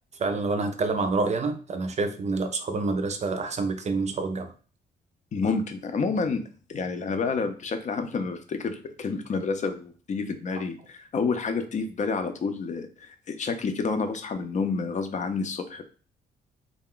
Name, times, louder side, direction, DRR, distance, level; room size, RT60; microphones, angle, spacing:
voice 1, 0.2-4.5, right 3 dB, 40° right, 7 dB, 0.5 m, -27 dB
voice 2, 5.3-6.4 6.7-15.8, left 4 dB, 45° left, 7 dB, 0.5 m, -29 dB
2.3 x 2.1 x 3.6 m, 0.39 s
cardioid pair, 85°, 17 cm